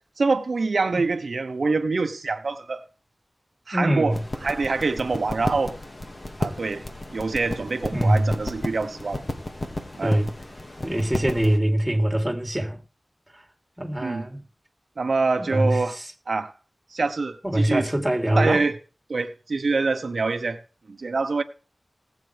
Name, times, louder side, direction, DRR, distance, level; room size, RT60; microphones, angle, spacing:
voice 1, 0.2-2.8 3.7-4.1 4.4-5.8 6.4-6.8 7.1-9.2 10.0-10.2 14.0-14.3 15.0-16.0 16.3-16.5 16.9-17.9 18.4-18.8 19.1-20.6 20.9-21.4, right 3 dB, 75° right, 0.9 m, -25 dB
voice 2, 3.7-4.2 7.9-8.3 10.0-10.3 10.8-12.8 13.8-14.4 15.4-16.1 17.4-18.6, right 1 dB, 10° right, 3.2 m, -23 dB
sound 1, 4.1-11.6, left 1 dB, 40° left, 2.1 m, -33 dB
19.5 x 8.3 x 3.4 m
wide cardioid pair, 85°, 0 cm